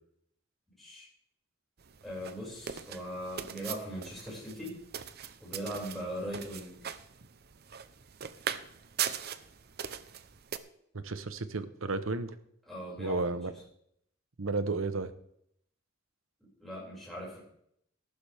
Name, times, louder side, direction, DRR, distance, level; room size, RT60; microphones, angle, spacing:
voice 1, 0.8-1.1 2.0-4.8 5.4-6.8 12.7-13.2 16.6-17.4, equal, ahead, -7 dB, 5.9 m, -39 dB
sound 1, 1.8-10.6, right 8 dB, 50° right, 0.7 m, -40 dB
voice 2, 10.9-12.4 13.0-13.5 14.4-15.1, right 3 dB, 80° right, 12 dB, 1.0 m, -33 dB
14.5 x 12.0 x 3.5 m, 0.72 s
head